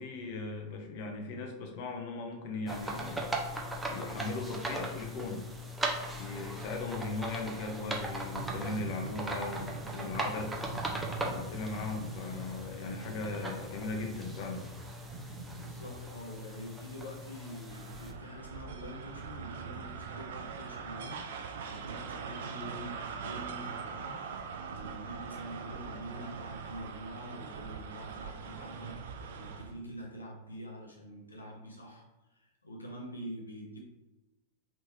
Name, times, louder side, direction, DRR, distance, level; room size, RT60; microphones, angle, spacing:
voice 1, 0.0-5.4 6.2-10.5 11.3-14.7, left 3 dB, 45° left, 3 dB, 0.6 m, -38 dB
sound 1, 2.7-18.1, right 1 dB, 10° right, 0.6 m, -39 dB
sound 2, 8.2-16.0, right 5 dB, 40° right, 1.0 m, -45 dB
voice 2, 15.6-24.2 24.7-33.8, equal, 80° left, -1 dB, 0.8 m, -46 dB
sound 3, 17.7-29.8, right 6 dB, 60° right, 0.3 m, -42 dB
3.2 x 3.0 x 3.2 m, 1.0 s
figure-of-eight pair, 90°, 0 cm